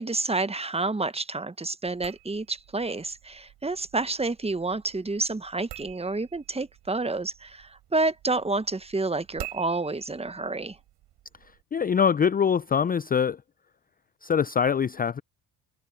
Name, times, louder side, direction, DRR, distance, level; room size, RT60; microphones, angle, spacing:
voice 1, 0.0-10.8, right 3 dB, 15° right, 1.4 m, -29 dB
sound 1, 1.8-11.6, right 17 dB, 60° right, 6.5 m, -48 dB
voice 2, 11.7-13.4 14.2-15.2, left 7 dB, 20° left, 0.6 m, -23 dB
hypercardioid pair, 60°, 46 cm